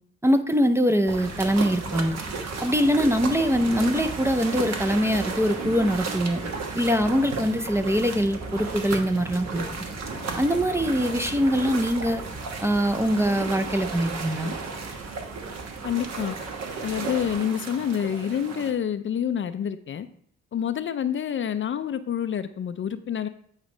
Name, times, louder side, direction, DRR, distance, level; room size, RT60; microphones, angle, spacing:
voice 1, 0.2-2.2 2.6-6.4 6.7-9.7 10.4-12.2 12.6-14.5, equal, 10° right, 0.5 m, -23 dB
sound 1, 1.0-17.4, right 1 dB, 25° right, 1.4 m, -41 dB
sound 2, 1.1-18.7, right 4 dB, 60° right, 1.2 m, -34 dB
voice 2, 15.8-16.4 16.8-20.1 20.5-23.3, left 9 dB, 40° left, 0.5 m, -27 dB
8.8 x 3.2 x 5.1 m
cardioid pair, 90°, 30 cm